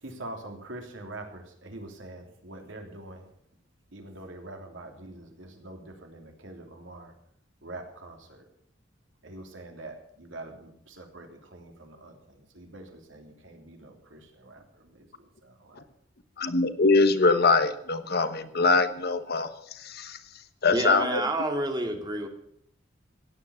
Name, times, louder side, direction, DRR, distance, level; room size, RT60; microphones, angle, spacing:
voice 1, 0.0-3.3 3.9-7.1 7.6-8.4 9.2-15.8, right 2 dB, 80° right, 3 dB, 3.1 m, -44 dB
voice 2, 16.4-19.5 19.8-20.2 20.6-21.2, left 3 dB, 55° left, 11 dB, 1.2 m, -23 dB
voice 3, 20.7-22.3, right 1 dB, 20° right, 4 dB, 2.3 m, -28 dB
16.0 x 9.4 x 7.1 m, 0.72 s
head